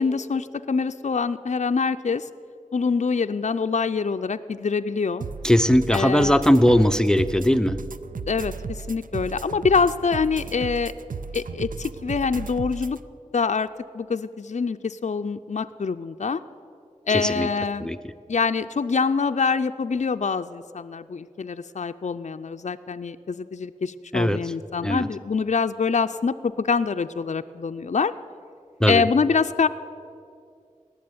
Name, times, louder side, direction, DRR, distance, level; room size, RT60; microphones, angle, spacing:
voice 1, 0.0-2.3 2.7-5.3 5.9-6.4 8.3-10.9 11.3-13.0 13.3-13.7 13.9-16.4 17.1-17.9 18.3-28.1 28.9-29.7, left 5 dB, 60° left, 9 dB, 0.4 m, -25 dB
sound 1, 5.2-13.0, right 5 dB, 80° right, 0.5 m, -35 dB
voice 2, 5.4-7.8 17.1-17.5 17.8-18.0 24.1-24.4 24.8-25.1 28.8-29.0, equal, 5° left, 13 dB, 0.5 m, -19 dB
18.0 x 7.0 x 9.6 m, 2.4 s
wide cardioid pair, 50°, 14 cm